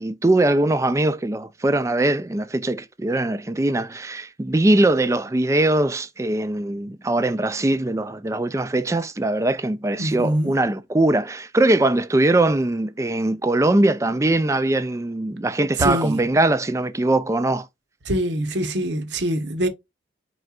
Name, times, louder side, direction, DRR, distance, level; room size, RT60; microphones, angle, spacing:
voice 1, 0.0-17.7, right 2 dB, 15° right, 0.3 m, -21 dB
voice 2, 10.0-10.5 15.8-16.2 18.1-19.7, right 1 dB, 70° right, 0.9 m, -24 dB
4.3 x 3.8 x 2.3 m
head